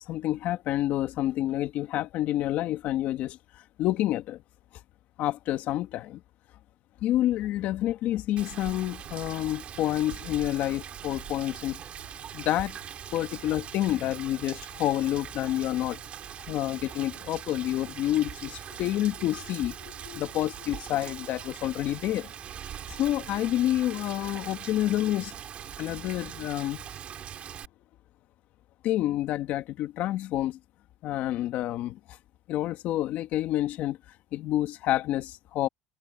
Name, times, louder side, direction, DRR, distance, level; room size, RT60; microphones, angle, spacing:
voice 1, 0.1-3.4 3.8-4.4 5.2-6.2 7.0-11.8 12.3-12.8 13.1-16.0 16.5-22.3 22.9-25.3 25.8-26.8 28.8-30.6 31.0-32.0 32.5-34.0 34.3-35.7, left 14 dB, 55° left, 2.0 m, -28 dB
Rain, 8.4-27.7, right 9 dB, 40° right, 2.9 m, -42 dB
cardioid pair, 135°, 3 cm